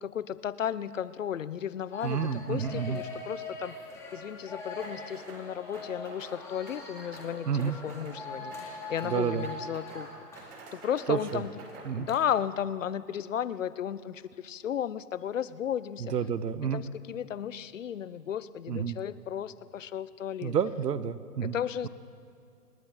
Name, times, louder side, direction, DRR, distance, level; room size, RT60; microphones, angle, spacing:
voice 1, 0.0-3.8 4.1-10.1 10.7-16.1 16.6-20.6 21.4-21.9, left 9 dB, 55° left, 17 dB, 0.6 m, -34 dB
sound 1, 1.9-11.3 11.6-11.7 12.1-12.2, left 2 dB, 5° left, 1.8 m, -42 dB
voice 2, 2.0-3.0 7.5-7.8 9.0-9.5 11.1-11.4 11.8-12.1 16.0-16.8 18.7-19.0 20.4-21.5, right 7 dB, 80° right, 15 dB, 1.0 m, -30 dB
sound 2, 4.8-5.5 5.7-6.4 6.7-7.3 7.6-8.2 8.5-9.2 9.4-10.1 10.4-11.9, right 3 dB, 55° right, 4.3 m, -49 dB
27.5 x 10.5 x 4.1 m, 2.3 s
hypercardioid pair, 155°, 48 cm